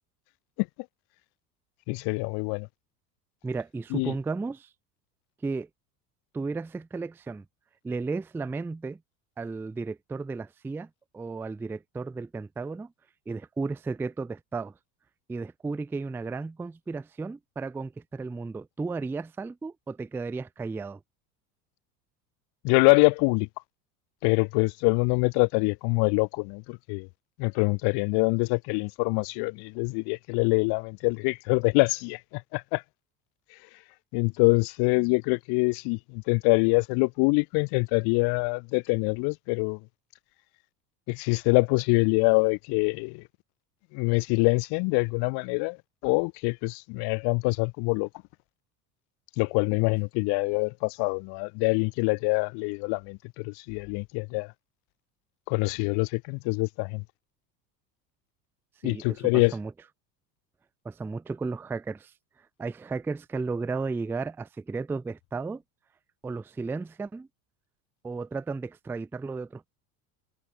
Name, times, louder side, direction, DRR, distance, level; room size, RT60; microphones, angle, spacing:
voice 1, 1.9-2.7 3.9-4.1 22.6-23.5 24.2-27.1 27.4-32.8 34.1-39.8 41.1-43.2 43.9-45.8 46.0-48.1 49.4-54.5 55.5-57.0 58.8-59.5, left 32 dB, 50° left, 1.0 m, -25 dB
voice 2, 3.4-4.7 5.4-5.7 6.3-7.4 7.8-9.0 9.4-12.9 13.3-14.7 15.3-21.0 58.8-59.7 60.8-62.1 62.6-65.6 66.2-67.3 68.0-69.7, right 4 dB, 5° right, 0.4 m, -34 dB
hypercardioid pair, 75°, 49 cm